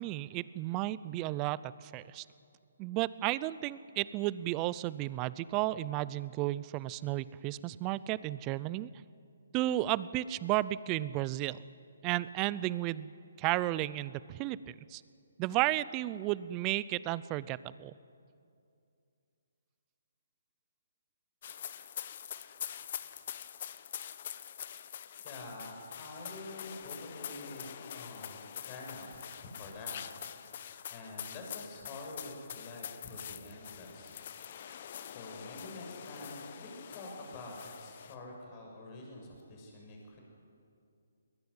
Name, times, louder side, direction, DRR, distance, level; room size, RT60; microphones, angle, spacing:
voice 1, 0.0-2.2 2.8-8.9 9.5-11.6 12.0-13.1 13.4-15.0 15.4-17.9, right 16 dB, 20° right, 19 dB, 0.5 m, -33 dB
sound 1, 21.4-38.1, left 9 dB, 45° left, 1.0 m, -45 dB
voice 2, 25.2-30.0 30.9-34.1 35.1-40.2, left 2 dB, 25° left, 0 dB, 6.8 m, -47 dB
21.0 x 20.5 x 9.7 m, 2.5 s
hypercardioid pair, 155°, 0 cm